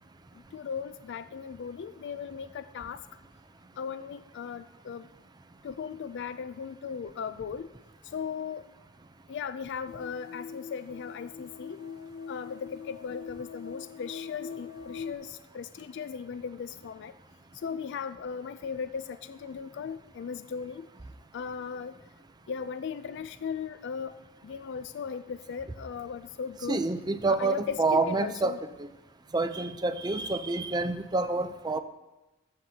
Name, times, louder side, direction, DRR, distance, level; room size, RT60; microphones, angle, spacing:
voice 1, 0.3-3.0 3.8-5.1 5.6-7.7 8.0-8.7 9.3-11.8 12.3-17.1 17.5-20.9 21.3-22.0 22.5-24.1 24.4-26.8 27.3-28.6, left 6 dB, 55° left, 12 dB, 0.3 m, -37 dB
sound 1, 9.9-15.1, left 5 dB, 90° left, 0.7 m, -42 dB
voice 2, 26.7-28.9 29.3-31.8, right 3 dB, 20° right, 10 dB, 0.5 m, -28 dB
21.5 x 7.6 x 2.8 m, 1.1 s
head